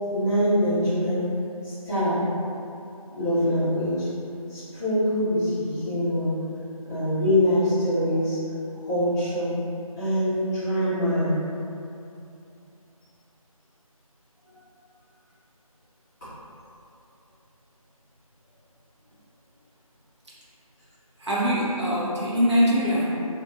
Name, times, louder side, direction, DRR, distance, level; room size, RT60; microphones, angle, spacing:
voice 1, 0.1-1.2 1.6-2.2 3.2-4.1 4.5-6.3 6.9-8.4 8.8-9.5 10.0-11.4, equal, 25° left, -18 dB, 1.1 m, -24 dB
voice 2, 21.2-23.2, equal, 50° right, -7 dB, 0.9 m, -23 dB
4.1 x 2.8 x 2.4 m, 2.7 s
figure-of-eight pair, 165°, 19 cm